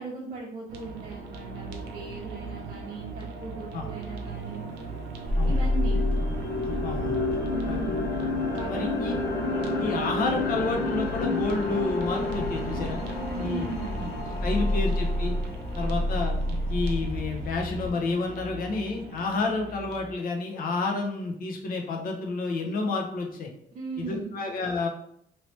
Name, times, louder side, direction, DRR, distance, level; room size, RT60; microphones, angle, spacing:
voice 1, 0.0-4.7 5.4-6.0 7.5-8.1 8.5-8.9 13.3-14.1 14.5-14.9 23.7-24.4, right 4 dB, 40° right, -4 dB, 0.8 m, -38 dB
sound 1, 0.7-20.1, right 4 dB, 90° right, 0.6 m, -40 dB
sound 2, 4.4-4.5 4.9-17.0, left 2 dB, 85° left, 1.0 m, -31 dB
sound 3, 5.3-17.9, left 1 dB, 5° left, 0.5 m, -31 dB
voice 2, 6.8-7.2 7.7-7.8 8.7-9.1 9.8-13.0 13.4-13.6 14.4-15.3 15.8-16.4 16.7-23.5 24.0-24.9, left 3 dB, 55° left, 2 dB, 0.8 m, -30 dB
3.0 x 2.8 x 3.2 m, 0.71 s
cardioid pair, 110°, 17 cm